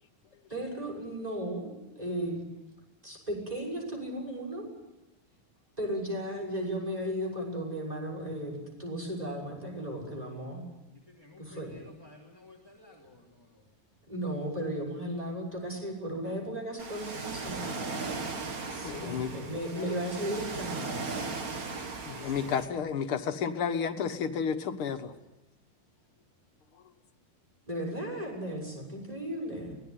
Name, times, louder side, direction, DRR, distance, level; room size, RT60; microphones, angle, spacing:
voice 1, 0.5-1.7 2.0-2.4 3.0-4.7 5.8-10.6 11.4-11.8 14.1-17.9 18.7-21.3 22.4-22.6 27.7-29.8, equal, 15° right, 6.7 m, -35 dB
voice 2, 11.1-13.6, left 2 dB, 10° left, 3.0 m, -54 dB
Ocean, 16.8-22.7, right 4 dB, 45° right, 2.2 m, -37 dB
voice 3, 18.8-19.3 19.8-19.9 22.1-25.1, left 7 dB, 75° left, 2.3 m, -31 dB
24.0 x 19.0 x 9.4 m
omnidirectional pair, 2.4 m